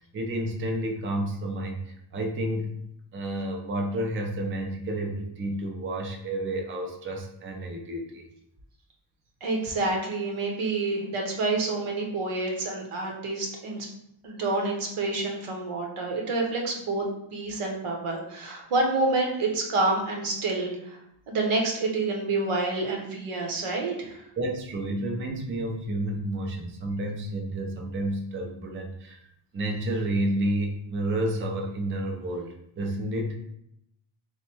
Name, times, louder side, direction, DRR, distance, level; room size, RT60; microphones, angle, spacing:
voice 1, 0.0-2.7 3.1-8.2 24.4-29.2 29.5-33.4, right 1 dB, 25° right, 2 dB, 0.4 m, -30 dB
voice 2, 9.4-13.9 14.2-17.1 17.3-21.0 21.3-24.2, right 3 dB, 85° right, 0 dB, 1.0 m, -28 dB
3.2 x 2.2 x 4.3 m, 0.76 s
wide cardioid pair, 165°, 49 cm